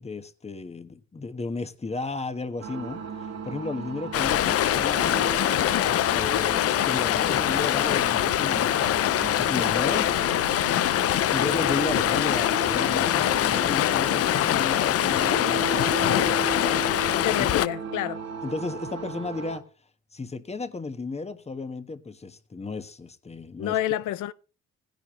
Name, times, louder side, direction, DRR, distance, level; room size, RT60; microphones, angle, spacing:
voice 1, 0.0-3.0 3.4-5.4 5.9-10.1 11.3-16.7 17.4-17.5 18.4-19.6 20.1-23.8, left 3 dB, 20° left, 1.3 m, -34 dB
sound 1, 2.6-19.6, right 6 dB, 60° right, 2.1 m, -36 dB
Stream, 4.1-17.7, left 12 dB, 50° left, 0.5 m, -23 dB
voice 2, 17.1-18.2 23.6-24.3, left 12 dB, 85° left, 0.7 m, -28 dB
16.5 x 10.5 x 3.1 m
cardioid pair, 90°, 30 cm